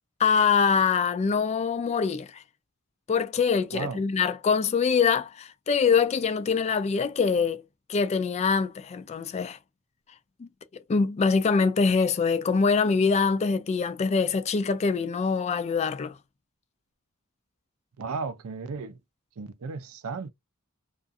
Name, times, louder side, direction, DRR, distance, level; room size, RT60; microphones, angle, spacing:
voice 1, 0.2-2.4 3.1-7.6 7.9-9.6 10.4-10.5 10.9-16.2, left 5 dB, 30° left, 0.3 m, -24 dB
voice 2, 18.0-19.0 19.4-20.3, right 4 dB, 75° right, 0.4 m, -34 dB
2.4 x 2.3 x 2.6 m
head